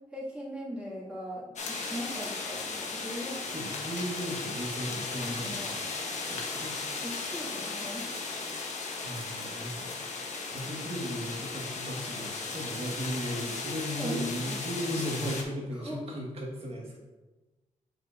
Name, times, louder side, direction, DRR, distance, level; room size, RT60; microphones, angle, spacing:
voice 1, 0.1-3.5 5.2-5.8 7.0-8.4 14.0-14.6 15.7-16.1, equal, 10° right, -8 dB, 2.1 m, -40 dB
sound 1, 1.6-15.4, left 4 dB, 60° left, 1.0 m, -36 dB
voice 2, 3.5-5.9 6.3-6.8 9.0-10.0 10.5-17.0, equal, 45° right, -2 dB, 1.6 m, -36 dB
7.9 x 5.0 x 2.6 m, 1.2 s
wide cardioid pair, 135°, 13 cm